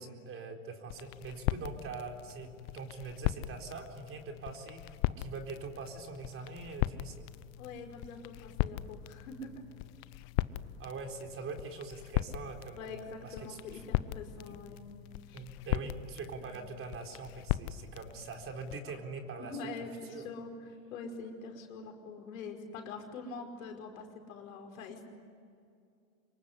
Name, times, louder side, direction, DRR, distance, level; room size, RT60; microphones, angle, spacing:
voice 1, 0.0-7.3 10.8-13.6 15.3-19.6 20.1-20.3, right 4 dB, 30° right, 4 dB, 4.1 m, -43 dB
sound 1, 0.9-18.8, left 16 dB, 50° left, 0.9 m, -38 dB
voice 2, 7.6-9.7 12.7-14.8 15.3-15.4 16.4-16.6 19.4-25.0, left 3 dB, 75° left, 3 dB, 5.1 m, -44 dB
26.0 x 23.0 x 9.8 m, 2.4 s
hypercardioid pair, 110°, 41 cm